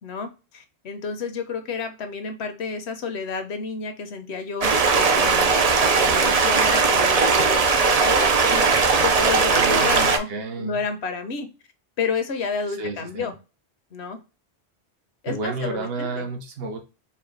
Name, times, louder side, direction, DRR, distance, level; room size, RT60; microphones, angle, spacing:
voice 1, 0.0-10.3 10.6-11.5 12.0-13.3 13.9-14.2 15.2-16.3, left 5 dB, 75° left, 7 dB, 1.1 m, -31 dB
Stream, 4.6-10.2, right 4 dB, 45° right, 0.6 m, -19 dB
voice 2, 9.5-10.8 12.8-13.3 15.3-16.8, right 3 dB, 65° right, 3 dB, 1.1 m, -31 dB
4.3 x 2.3 x 3.8 m, 0.30 s
omnidirectional pair, 1.1 m